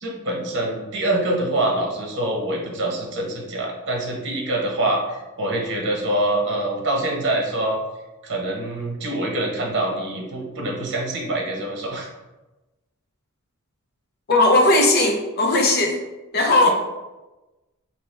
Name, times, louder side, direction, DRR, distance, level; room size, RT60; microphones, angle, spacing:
voice 1, 0.0-7.8 8.2-12.1 16.6-16.7, right 1 dB, 55° right, -1 dB, 1.0 m, -25 dB
voice 2, 14.3-16.0 16.3-16.7, left 2 dB, 45° left, 1 dB, 0.7 m, -17 dB
4.4 x 2.9 x 3.3 m, 1.1 s
head